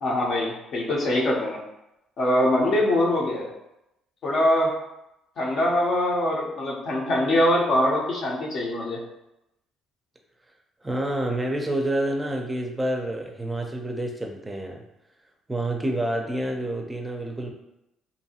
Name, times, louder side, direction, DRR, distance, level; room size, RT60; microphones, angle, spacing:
voice 1, 0.0-1.6 2.2-3.5 4.2-4.7 5.4-9.0, left 1 dB, 60° left, -2 dB, 0.7 m, -23 dB
voice 2, 10.8-14.8 15.5-17.5, right 1 dB, 15° right, 1 dB, 0.5 m, -28 dB
2.6 x 2.3 x 2.8 m, 0.88 s
hypercardioid pair, 55°, 0 cm